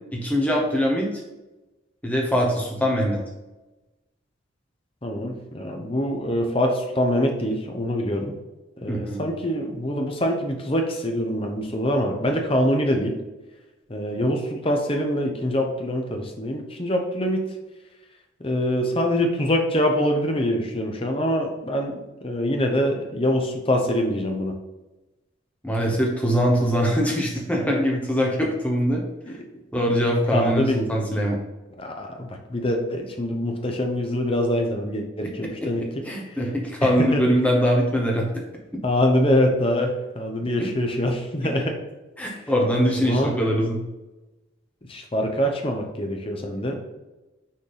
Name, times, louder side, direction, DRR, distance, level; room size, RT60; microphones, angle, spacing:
voice 1, 0.1-1.1 2.0-3.2 8.9-9.2 25.6-29.0 29.7-31.4 36.0-38.3 42.2-43.8, equal, 5° left, -2 dB, 1.2 m, -22 dB
voice 2, 5.0-8.3 8.8-13.1 13.9-17.4 18.4-21.9 22.2-24.5 29.5-29.6 30.3-30.9 31.8-35.8 36.8-37.2 38.8-41.7 42.9-43.4 44.9-46.8, equal, 25° left, 2 dB, 0.9 m, -24 dB
6.4 x 3.8 x 3.9 m, 1.1 s
head